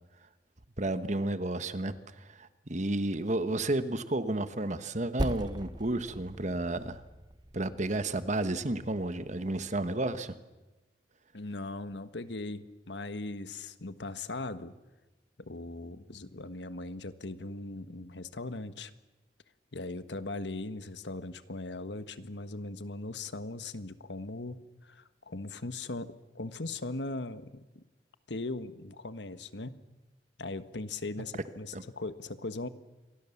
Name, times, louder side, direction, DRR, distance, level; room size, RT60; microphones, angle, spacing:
voice 1, 0.8-7.0 7.5-10.3 31.7-31.8, right 2 dB, 45° right, 11 dB, 1.3 m, -32 dB
Percussion, 5.2-10.0, right 1 dB, 25° right, 1.2 m, -41 dB
voice 2, 11.3-14.7 15.4-18.9 19.7-24.6 24.9-27.8 28.3-29.8 30.4-32.7, left 2 dB, 80° left, 12 dB, 1.4 m, -39 dB
28.0 x 23.5 x 7.2 m, 1.1 s
head